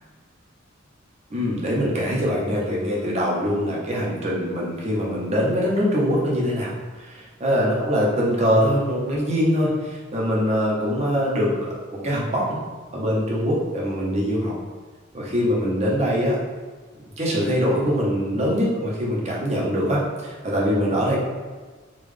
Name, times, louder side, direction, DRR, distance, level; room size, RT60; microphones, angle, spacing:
voice 1, 1.3-6.7 7.0-7.2 7.4-12.6 12.9-14.5 15.1-16.4 17.2-21.2, equal, 35° right, -4 dB, 0.8 m, -23 dB
3.7 x 2.4 x 3.3 m, 1.4 s
head